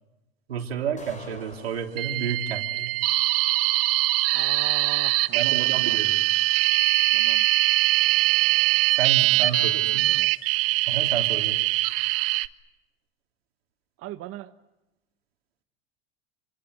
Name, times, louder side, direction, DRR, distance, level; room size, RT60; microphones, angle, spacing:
voice 1, 0.5-2.9 5.3-6.2 9.0-9.8 10.9-11.6, right 7 dB, 85° right, 3 dB, 3.6 m, -30 dB
sound 1, 1.0-2.0, left 3 dB, 25° left, 5.6 m, -44 dB
sound 2, 2.0-12.5, right 19 dB, 70° right, 1.2 m, -22 dB
voice 2, 4.3-6.0 7.1-7.5 9.2-10.3 14.0-14.5, right 15 dB, 50° right, 8 dB, 1.2 m, -40 dB
28.0 x 25.5 x 7.9 m, 1.0 s
hypercardioid pair, 85°, 30 cm